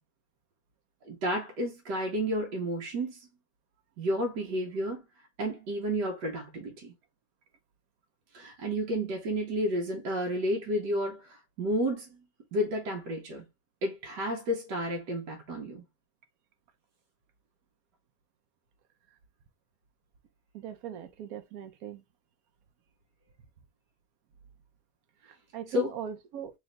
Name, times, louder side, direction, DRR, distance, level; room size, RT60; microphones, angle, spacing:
voice 1, 1.0-3.2 4.0-5.0 5.4-6.9 8.3-12.2 12.5-13.5 13.8-15.8 25.7-25.9, equal, 85° right, 1.6 m, -31 dB
voice 2, 20.5-22.0 25.2-26.5, right 9 dB, 65° right, 1.1 m, -40 dB
3.4 x 3.2 x 3.9 m
omnidirectional pair, 1.8 m